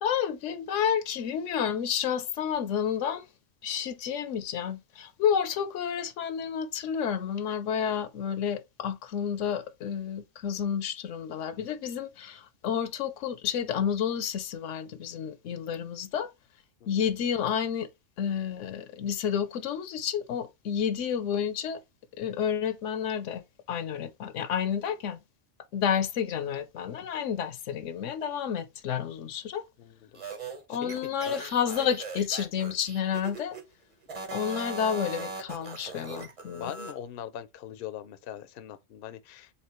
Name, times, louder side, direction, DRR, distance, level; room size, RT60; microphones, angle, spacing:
voice 1, 0.0-3.3 3.6-16.3 16.9-17.9 18.2-21.8 22.2-23.4 23.7-25.2 25.7-29.6 30.7-33.6 34.3-36.7, left 8 dB, 80° left, 1.0 m, -30 dB
voice 2, 29.8-30.2 30.7-30.9 31.3-31.4 36.5-39.5, left 10 dB, 60° left, 0.7 m, -41 dB
sound 1, 30.1-33.6 34.0-37.0, right 3 dB, 30° right, 1.0 m, -40 dB
4.3 x 3.5 x 2.9 m
omnidirectional pair, 1.2 m